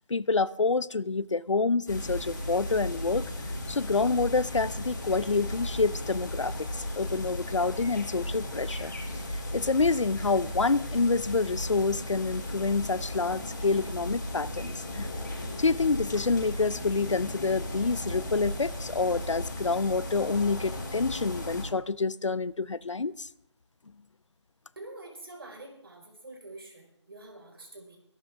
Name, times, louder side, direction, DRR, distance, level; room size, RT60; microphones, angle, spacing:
voice 1, 0.1-3.2 3.7-8.9 9.5-15.1 15.6-23.3, left 4 dB, 85° left, 0.6 m, -27 dB
sound 1, 1.9-21.6, left 1 dB, 40° left, 5.9 m, -36 dB
voice 2, 24.7-28.0, right 2 dB, 50° right, 5.1 m, -46 dB
22.5 x 12.0 x 3.6 m
figure-of-eight pair, 170°, 15 cm